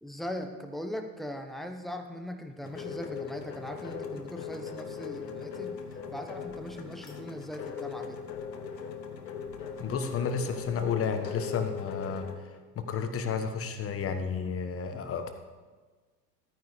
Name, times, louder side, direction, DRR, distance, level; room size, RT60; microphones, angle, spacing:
voice 1, 0.0-8.2, equal, ahead, 5 dB, 1.0 m, -40 dB
sound 1, 2.6-12.4, left 6 dB, 80° left, 1.3 m, -39 dB
voice 2, 9.8-15.3, left 6 dB, 25° left, 7 dB, 1.3 m, -32 dB
14.0 x 9.3 x 5.0 m, 1.4 s
figure-of-eight pair, 85°, 49 cm